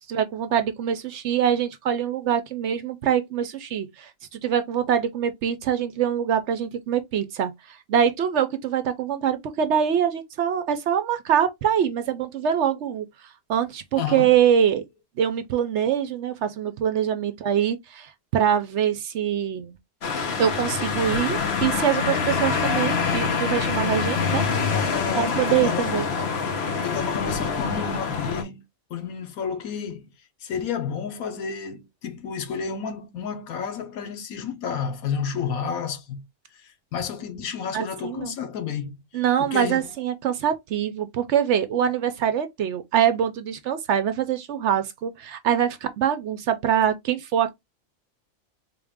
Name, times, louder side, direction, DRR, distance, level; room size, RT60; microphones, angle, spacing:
voice 1, 0.1-13.1 13.5-14.8 15.2-19.8 20.4-24.4 25.2-26.1 37.7-38.3 39.1-47.5, right 9 dB, 65° right, 0.8 m, -24 dB
voice 2, 14.0-14.4 24.5-26.0 26.8-28.6 28.9-30.1 30.4-36.2 36.5-39.9, left 6 dB, 85° left, 1.3 m, -31 dB
sound 1, 20.0-28.4, left 5 dB, 55° left, 1.1 m, -25 dB
3.9 x 2.4 x 3.4 m
omnidirectional pair, 1.4 m